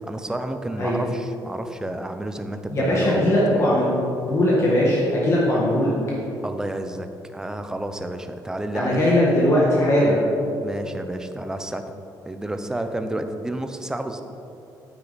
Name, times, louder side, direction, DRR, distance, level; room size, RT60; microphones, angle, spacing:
voice 1, 0.0-3.7 6.4-9.1 10.6-11.8 12.2-14.2, right 1 dB, 10° right, 7 dB, 0.6 m, -31 dB
voice 2, 2.7-3.9 4.3-5.9 8.7-10.2, left 1 dB, 40° left, -5 dB, 1.7 m, -19 dB
9.2 x 9.1 x 4.1 m, 2.8 s
cardioid pair, 135°, 8 cm